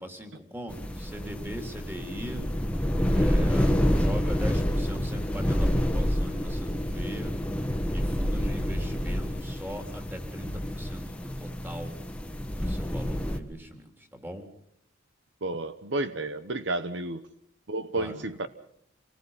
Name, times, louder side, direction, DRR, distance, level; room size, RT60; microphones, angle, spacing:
voice 1, 0.0-2.4 3.1-7.3 7.9-12.0 12.5-14.5 17.9-18.4, equal, 10° right, 5 dB, 3.5 m, -40 dB
sound 1, 0.7-13.4, equal, 5° left, 1.5 m, -28 dB
voice 2, 15.4-17.3 17.7-18.5, right 2 dB, 65° right, 11 dB, 1.0 m, -31 dB
27.5 x 19.0 x 5.7 m, 0.75 s
head